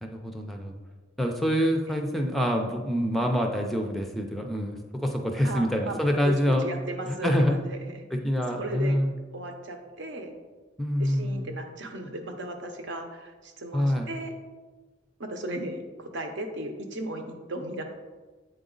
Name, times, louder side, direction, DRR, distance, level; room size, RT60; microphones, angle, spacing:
voice 1, 0.0-0.8 1.2-6.7 7.1-7.5 8.1-9.1 10.8-11.5 13.7-14.1, equal, ahead, 3 dB, 0.4 m, -26 dB
voice 2, 5.4-6.0 6.2-8.1 8.5-9.0 9.3-10.3 11.0-14.3 15.2-17.8, right 1 dB, 65° right, 4 dB, 0.8 m, -36 dB
7.9 x 4.0 x 3.8 m, 1.3 s
head